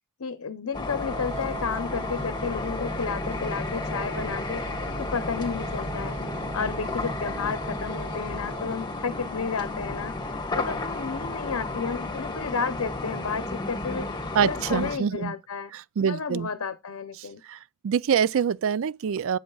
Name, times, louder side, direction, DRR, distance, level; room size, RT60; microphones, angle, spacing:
voice 1, 0.2-4.7 5.0-14.1 14.4-15.7 16.0-17.4, left 5 dB, 75° left, 0.7 m, -32 dB
sound 1, 0.7-15.0, left 2 dB, 20° left, 1.6 m, -32 dB
sound 2, 1.0-8.7, right 6 dB, 35° right, 1.7 m, -43 dB
voice 2, 14.3-15.3 15.7-16.5 17.5-17.6 17.8-19.4, right 7 dB, 70° right, 0.4 m, -25 dB
7.9 x 7.8 x 2.3 m
head